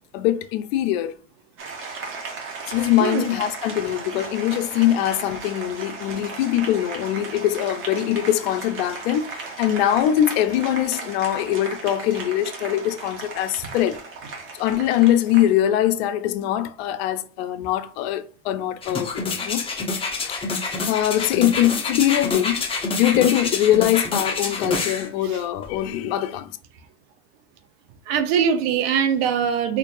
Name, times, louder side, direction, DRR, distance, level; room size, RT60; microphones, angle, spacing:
voice 1, 0.1-1.1 2.7-14.0 14.5-19.6 19.9-22.6 23.0-26.5, left 12 dB, 65° left, 0.6 m, -22 dB
Applause, 1.6-15.6, right 4 dB, 40° right, 1.3 m, -36 dB
voice 2, 3.0-3.3 25.3-25.4 28.1-29.8, right 7 dB, 65° right, 0.9 m, -22 dB
sound 1, 18.8-25.1 25.6-25.7, left 3 dB, 15° left, 0.9 m, -27 dB
4.4 x 2.7 x 2.6 m
supercardioid pair, 115°, 33 cm